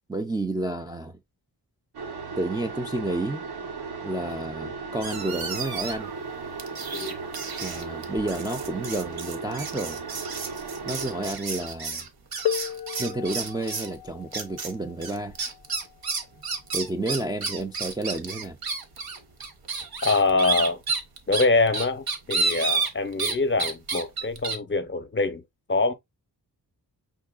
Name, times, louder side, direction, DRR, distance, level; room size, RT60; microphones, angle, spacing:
voice 1, 0.1-1.2 2.4-3.4 4.0-6.1 7.6-10.0 10.8-12.1 13.0-15.3 16.7-18.6, right 2 dB, 10° right, 0.3 m, -30 dB
sound 1, 1.9-11.3, right 4 dB, 90° right, 1.0 m, -36 dB
sound 2, 5.0-6.1 6.6-13.9 14.3-14.7 15.0-23.3 23.6-24.6, right 4 dB, 65° right, 1.0 m, -31 dB
sound 3, 12.5-17.9 18.9-19.0 19.9-20.1, left 11 dB, 75° left, 0.5 m, -36 dB
voice 2, 20.0-20.8 21.3-25.4 25.7-25.9, left 3 dB, 30° left, 0.6 m, -24 dB
5.5 x 3.7 x 2.4 m
wide cardioid pair, 135°, 38 cm